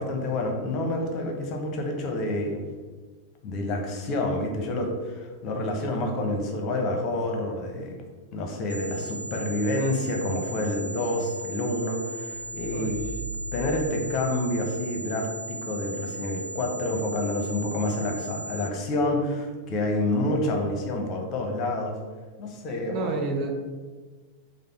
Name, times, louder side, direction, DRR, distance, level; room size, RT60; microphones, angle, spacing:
voice 1, 0.0-2.6 3.4-8.0 8.3-13.0 13.5-22.0 22.4-23.2, left 1 dB, 35° left, 2 dB, 0.8 m, -28 dB
sound 1, 8.7-18.7, right 2 dB, 85° right, 0.7 m, -38 dB
sound 2, 12.3-14.9, equal, 15° right, 0.9 m, -39 dB
voice 2, 12.7-13.0 22.9-23.5, right 3 dB, 35° right, 3 dB, 0.5 m, -29 dB
5.1 x 2.1 x 4.4 m, 1.4 s
figure-of-eight pair, 90°, 0 cm